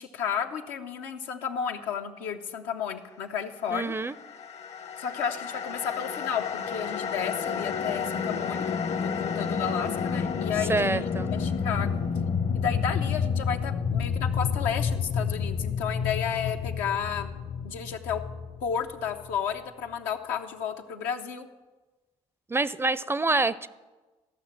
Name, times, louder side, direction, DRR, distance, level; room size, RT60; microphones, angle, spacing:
voice 1, 0.0-3.9 5.0-12.0 12.5-17.3 17.6-18.2 18.6-21.5, left 7 dB, 90° left, 4 dB, 0.8 m, -32 dB
voice 2, 3.7-4.2 10.7-11.3 22.5-23.7, right 3 dB, 20° right, 17 dB, 0.4 m, -26 dB
sound 1, 4.1-19.4, left 6 dB, 55° left, 0.9 m, -30 dB
14.0 x 5.8 x 7.2 m, 1.2 s
supercardioid pair, 65°, 13 cm